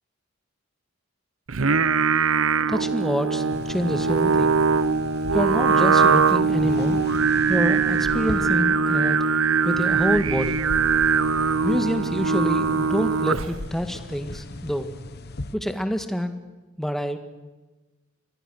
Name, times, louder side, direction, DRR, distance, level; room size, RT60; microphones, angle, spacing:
Singing, 1.5-13.7, right 5 dB, 75° right, 0.7 m, -21 dB
voice 1, 2.7-4.6 5.3-7.0 7.5-9.2 9.6-10.6 11.6-15.0 15.5-16.3 16.8-17.2, equal, ahead, 7 dB, 1.7 m, -27 dB
sound 1, 3.5-15.5, left 2 dB, 50° left, 1.1 m, -38 dB
27.5 x 23.0 x 6.4 m, 1.2 s
head